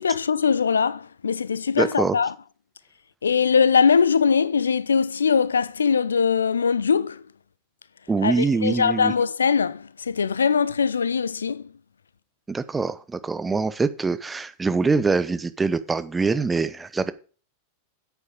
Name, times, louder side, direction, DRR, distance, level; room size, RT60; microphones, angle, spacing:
voice 1, 0.0-2.3 3.2-7.2 8.2-11.6, left 6 dB, 70° left, 0.4 m, -21 dB
voice 2, 1.8-2.1 8.1-9.1 12.5-17.1, right 4 dB, 10° right, 0.9 m, -24 dB
9.9 x 8.3 x 5.2 m
figure-of-eight pair, 90°, 0 cm